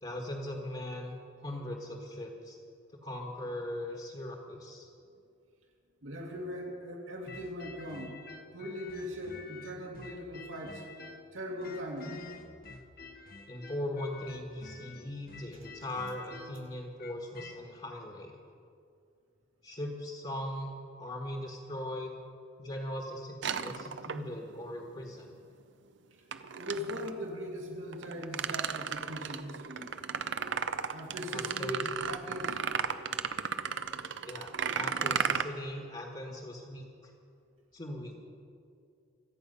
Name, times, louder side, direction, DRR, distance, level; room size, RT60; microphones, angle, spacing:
voice 1, 0.0-2.6 3.0-4.9 13.5-18.3 19.6-22.2 22.6-23.4 23.6-25.3 31.3-31.8 34.3-37.1 37.7-38.2, left 1 dB, 30° left, 0 dB, 1.4 m, -39 dB
voice 2, 6.0-8.2 8.5-10.8 11.3-12.2 26.6-29.9 30.9-32.6, equal, 80° right, 0 dB, 2.5 m, -40 dB
sound 1, 7.3-11.3 11.6-17.6, left 3 dB, 50° left, 1.1 m, -49 dB
sound 2, 23.4-24.5 26.3-27.1 27.9-35.4, right 7 dB, 60° right, 0.6 m, -34 dB
25.5 x 8.8 x 5.5 m, 2.5 s
head